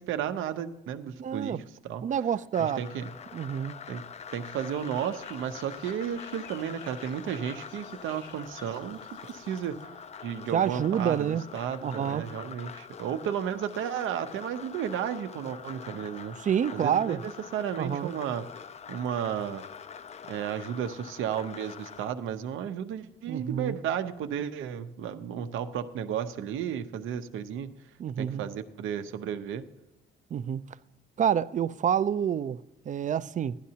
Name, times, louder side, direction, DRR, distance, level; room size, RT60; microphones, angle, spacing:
voice 1, 0.0-1.6 1.8-2.0 2.6-3.1 3.9-4.0 4.3-9.0 9.3-9.8 10.2-16.4 16.7-18.4 18.9-19.6 20.3-27.7 28.2-29.6, right 9 dB, 85° right, 0.7 m, -33 dB
voice 2, 1.2-1.6 2.0-2.8 3.3-3.8 10.5-11.5 11.8-12.3 16.4-17.2 17.8-18.1 23.3-23.8 28.0-28.5 30.3-30.7 31.2-32.6 32.9-33.6, right 8 dB, 40° right, 0.4 m, -28 dB
sound 1, 2.5-22.1, left 7 dB, 35° left, 0.4 m, -45 dB
sound 2, 4.5-9.8, left 4 dB, 75° left, 2.0 m, -55 dB
15.5 x 11.5 x 2.8 m
cardioid pair, 90°, 20 cm